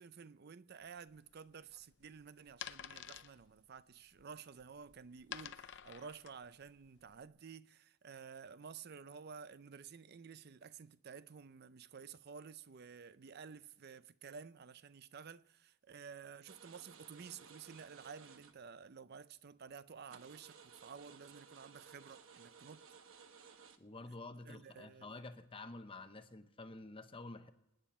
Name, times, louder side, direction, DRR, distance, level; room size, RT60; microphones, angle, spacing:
voice 1, 0.0-22.9 24.4-25.2, right 6 dB, 50° right, 0.5 m, -53 dB
sound 1, 0.8-7.3, left 9 dB, 60° left, 0.6 m, -51 dB
sound 2, 16.5-18.8 19.1-19.2 19.7-19.8 20.1-23.8, right 6 dB, 85° right, 1.1 m, -58 dB
voice 2, 23.8-27.5, left 2 dB, 25° left, 0.9 m, -50 dB
27.0 x 9.2 x 4.3 m
head